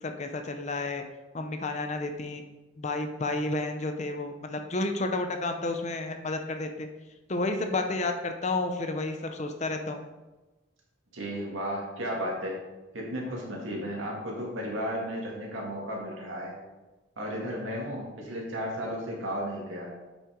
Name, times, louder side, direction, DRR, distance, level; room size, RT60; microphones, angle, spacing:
voice 1, 0.0-1.0 1.3-2.4 2.8-6.9 7.3-10.1, left 2 dB, 35° left, 5 dB, 0.6 m, -31 dB
voice 2, 11.1-12.6 12.9-16.5 17.2-19.9, equal, 80° right, -2 dB, 2.2 m, -34 dB
8.5 x 5.6 x 3.7 m, 1.1 s
head